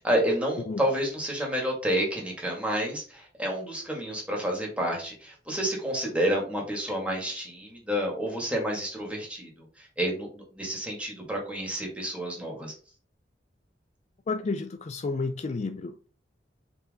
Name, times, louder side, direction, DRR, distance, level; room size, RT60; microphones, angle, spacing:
voice 1, 0.0-9.5 10.0-12.7, equal, 5° right, 2.3 m, -29 dB
voice 2, 14.3-16.1, left 3 dB, 40° left, 0.4 m, -31 dB
5.1 x 4.8 x 3.8 m
head